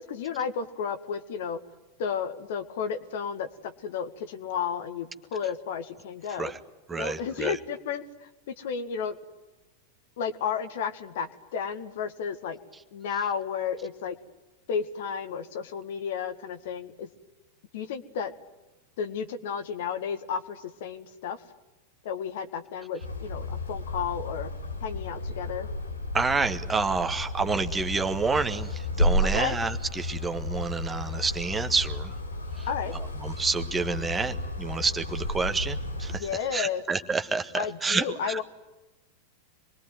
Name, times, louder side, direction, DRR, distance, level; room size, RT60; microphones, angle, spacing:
voice 1, 0.0-1.6 2.0-6.5 7.0-9.2 10.2-12.6 12.9-14.2 14.7-17.1 17.7-18.3 19.0-21.4 22.0-24.5 24.8-25.7 29.2-29.6 32.7-32.9 36.2-36.8 37.6-38.4, left 7 dB, 55° left, 10 dB, 1.9 m, -32 dB
voice 2, 6.9-7.6 26.1-32.2 32.6-32.7 32.9-38.4, right 4 dB, 15° right, 8 dB, 1.6 m, -29 dB
sound 1, 23.0-36.2, left 1 dB, 75° left, 4.3 m, -32 dB
26.5 x 22.0 x 9.4 m, 1.1 s
figure-of-eight pair, 90°, 0 cm